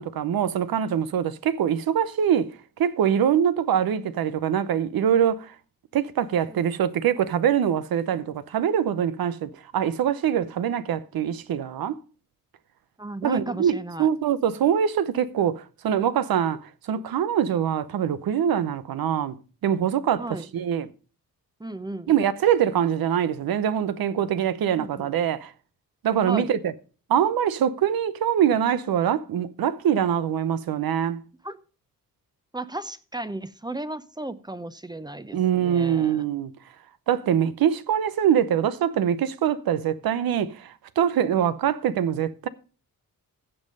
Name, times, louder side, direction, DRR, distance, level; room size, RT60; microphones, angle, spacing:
voice 1, 0.0-2.5 2.8-5.5 5.9-12.0 13.2-19.4 19.6-20.9 22.1-25.5 26.0-26.7 27.1-31.2 35.3-36.5 37.1-42.5, right 9 dB, 85° right, 0.8 m, -24 dB
voice 2, 13.0-14.1 20.2-20.5 21.6-22.1 24.8-25.1 26.2-26.5 31.4-31.6 32.5-36.3, right 2 dB, 10° right, 0.7 m, -35 dB
15.5 x 5.5 x 5.3 m
cardioid pair, 85°, 35 cm